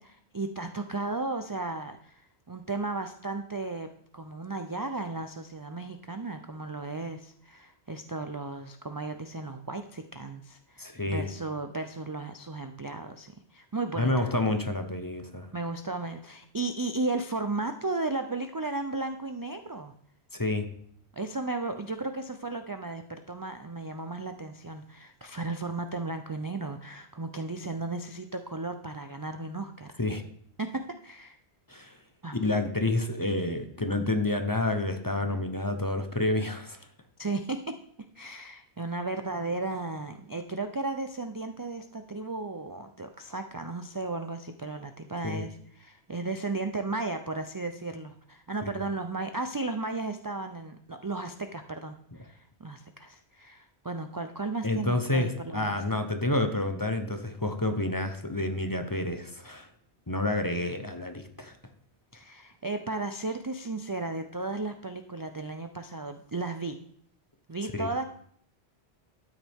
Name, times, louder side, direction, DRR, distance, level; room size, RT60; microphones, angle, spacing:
voice 1, 0.0-3.9 4.1-14.3 15.5-19.9 21.1-30.0 30.6-31.4 32.2-32.4 37.2-37.8 38.2-55.8 62.1-66.8 67.5-68.0, right 3 dB, 30° right, 6 dB, 0.4 m, -35 dB
voice 2, 10.8-11.3 14.0-15.5 20.3-20.7 30.0-30.2 31.7-32.0 32.3-36.8 45.2-45.4 48.6-48.7 54.6-59.7 60.1-61.6 67.8-67.9, left 2 dB, 20° left, 6 dB, 0.8 m, -29 dB
13.0 x 9.2 x 3.6 m, 0.63 s
omnidirectional pair, 1.1 m